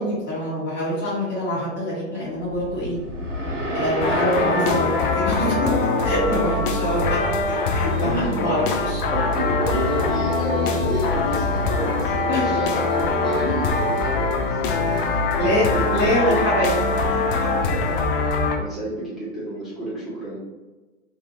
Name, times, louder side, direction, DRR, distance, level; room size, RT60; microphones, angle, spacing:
voice 1, 0.0-3.0 3.7-4.9 5.1-5.7 6.0-7.2 7.5-9.0 12.3-12.6 15.4-16.7 17.1-17.2, equal, 30° left, -8 dB, 1.4 m, -25 dB
sound 1, 2.4-6.7, right 1 dB, 80° right, 0.8 m, -31 dB
sound 2, 4.0-18.6, left 3 dB, 45° left, 0.5 m, -23 dB
sound 3, 5.8-17.0, right 1 dB, 15° right, 0.6 m, -41 dB
voice 2, 8.0-8.6 9.1-14.6 14.8-16.8 17.6-17.9 18.2-20.4, right 1 dB, ahead, -12 dB, 1.4 m, -30 dB
2.7 x 2.7 x 3.0 m, 1.2 s
figure-of-eight pair, 105°, 37 cm